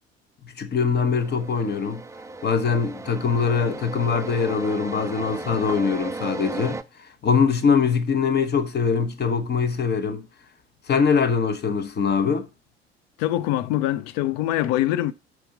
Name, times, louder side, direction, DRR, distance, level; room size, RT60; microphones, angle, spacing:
voice 1, 0.4-2.0 2.4-6.8 7.2-10.3 10.9-12.5, left 5 dB, 30° left, 1.2 m, -22 dB
sound 1, 1.0-6.8, right 3 dB, 10° right, 0.5 m, -35 dB
voice 2, 13.2-15.1, left 14 dB, 55° left, 0.7 m, -23 dB
5.7 x 4.8 x 6.5 m
figure-of-eight pair, 60°, 31 cm